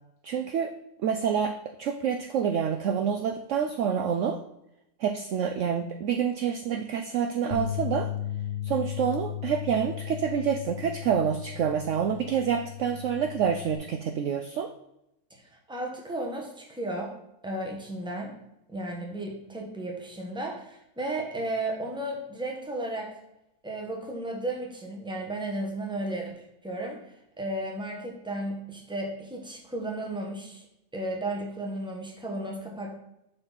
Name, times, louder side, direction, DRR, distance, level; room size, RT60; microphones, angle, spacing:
voice 1, 0.2-0.7 1.0-4.4 5.0-8.1 8.6-14.7, right 7 dB, 70° right, 8 dB, 0.8 m, -27 dB
sound 1, 7.5-13.8, left 11 dB, 50° left, 0.6 m, -36 dB
voice 2, 15.7-17.1 17.4-18.3 18.7-23.1 23.6-26.3 26.6-27.0 27.4-30.6 30.9-32.9, right 1 dB, 5° right, 0 dB, 1.1 m, -34 dB
6.8 x 5.8 x 4.1 m, 0.84 s
omnidirectional pair, 1.6 m